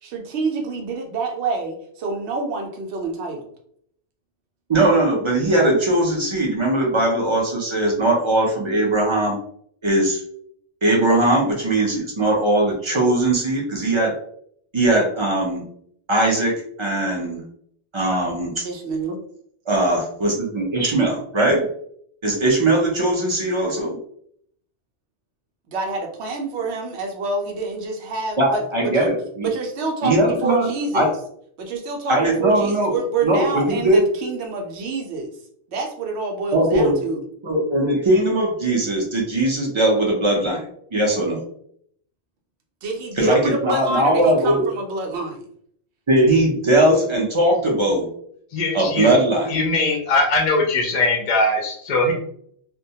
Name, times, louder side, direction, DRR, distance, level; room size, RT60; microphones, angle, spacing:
voice 1, 0.0-3.5 18.6-19.2 25.7-29.1 29.4-31.1 31.6-35.3 35.7-37.2 42.8-45.4, right 3 dB, 70° right, 2 dB, 0.8 m, -27 dB
voice 2, 4.7-9.4 9.8-10.2 10.8-14.1 14.7-15.6 16.1-17.4 17.9-18.5 19.7-21.7 22.2-24.0 28.4-29.5 30.0-30.7 30.9-31.1 32.1-32.9 33.2-34.0 36.5-37.0 37.4-40.6 40.9-41.4 43.2-44.6 46.1-48.0 48.7-49.5, right 1 dB, 45° right, -2 dB, 0.4 m, -19 dB
voice 3, 48.5-49.1 49.5-52.1, left 2 dB, 50° left, 0 dB, 0.5 m, -20 dB
2.2 x 2.1 x 2.7 m, 0.65 s
omnidirectional pair, 1.2 m